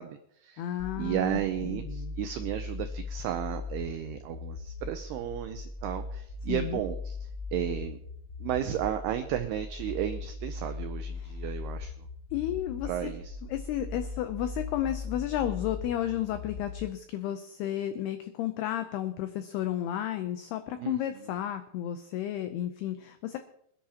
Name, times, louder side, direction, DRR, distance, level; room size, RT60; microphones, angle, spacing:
voice 1, 0.0-0.7 0.9-8.0 8.4-12.1 12.9-13.4 20.8-21.0, right 11 dB, 90° right, 7 dB, 2.3 m, -34 dB
voice 2, 0.6-2.2 6.5-6.8 11.2-11.3 12.3-13.1 13.5-23.4, left 11 dB, 90° left, 9 dB, 2.3 m, -32 dB
sound 1, 0.8-16.8, left 3 dB, 20° left, 1.6 m, -39 dB
25.0 x 10.0 x 2.9 m, 0.71 s
omnidirectional pair, 5.4 m